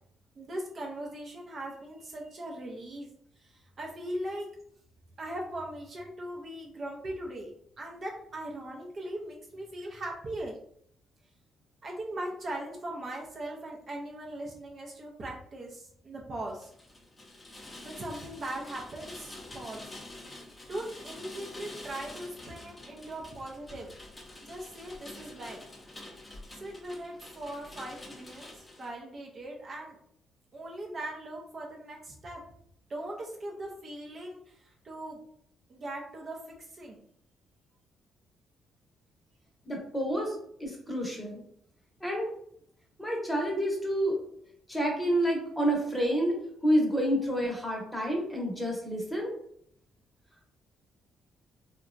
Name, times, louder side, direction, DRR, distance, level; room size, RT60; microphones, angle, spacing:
voice 1, 0.4-3.1 3.4-4.5 5.2-10.6 11.8-16.7 17.5-19.9 20.7-23.9 24.4-25.6 26.5-30.0 30.5-32.4 32.9-35.2 35.7-37.0, right 1 dB, 45° right, -1 dB, 0.6 m, -40 dB
Rain, 16.5-28.9, left 2 dB, 20° left, 0.6 m, -47 dB
voice 2, 39.7-40.3 40.6-41.4 42.0-42.3 43.0-44.2 44.7-46.3 46.6-49.3, equal, 5° left, -1 dB, 0.9 m, -28 dB
2.8 x 2.2 x 2.4 m, 0.68 s
cardioid pair, 90°, 0 cm